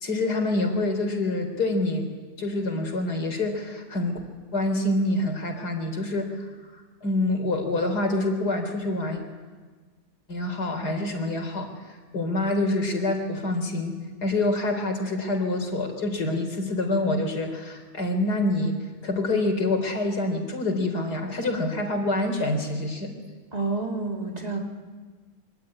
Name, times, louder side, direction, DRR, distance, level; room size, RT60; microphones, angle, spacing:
voice 1, 0.0-2.1 2.4-4.2 4.5-9.2 10.3-23.1, left 2 dB, 85° left, 5 dB, 4.2 m, -26 dB
voice 2, 23.5-24.6, right 3 dB, 25° right, 1 dB, 3.7 m, -29 dB
25.0 x 24.0 x 9.8 m, 1.4 s
omnidirectional pair, 1.7 m